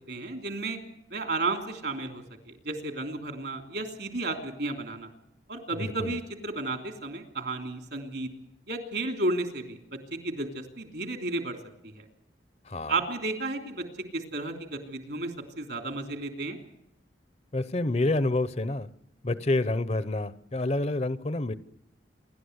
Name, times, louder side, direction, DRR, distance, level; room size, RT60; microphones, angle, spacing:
voice 1, 0.1-0.8 1.1-5.1 5.5-8.3 8.7-11.6 11.8-12.0 12.9-13.8 14.1-16.6, right 2 dB, 65° right, 4 dB, 3.1 m, -33 dB
voice 2, 5.8-6.2 12.6-13.0 17.5-18.9 19.2-21.5, left 2 dB, 35° left, 14 dB, 0.7 m, -28 dB
28.0 x 12.0 x 8.0 m, 0.80 s
head